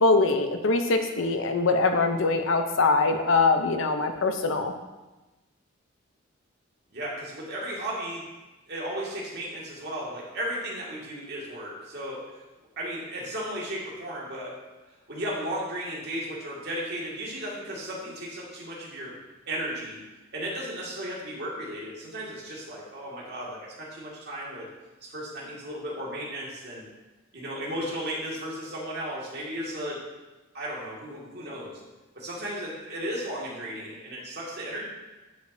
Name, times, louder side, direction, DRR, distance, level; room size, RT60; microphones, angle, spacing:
voice 1, 0.0-4.7, left 3 dB, 75° left, 6 dB, 0.7 m, -23 dB
voice 2, 6.9-8.3 8.7-12.3 12.8-14.6 15.1-19.2 19.5-20.0 20.3-24.7 25.0-26.9 27.3-30.0 30.5-31.8 32.1-34.8, right 1 dB, 55° right, -5 dB, 2.1 m, -35 dB
11.0 x 5.2 x 2.7 m, 1.1 s
head